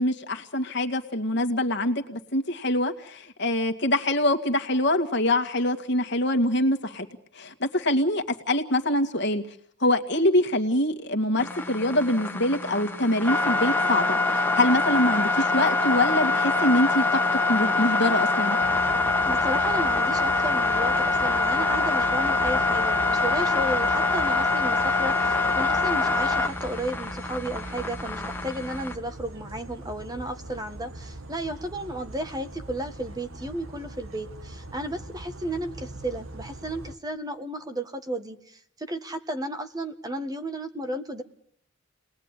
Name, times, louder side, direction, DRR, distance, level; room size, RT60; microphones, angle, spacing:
voice 1, 0.0-7.1 7.4-9.4 9.8-17.2 17.5-18.6, left 1 dB, 60° left, 5 dB, 2.1 m, -24 dB
sound 1, 11.4-28.9, left 3 dB, 10° left, 1.7 m, -24 dB
sound 2, 18.6-37.0, right 2 dB, 90° right, 1.8 m, -42 dB
voice 2, 19.3-41.2, right 1 dB, 20° right, 8 dB, 1.6 m, -33 dB
29.5 x 20.0 x 10.0 m, 0.68 s
head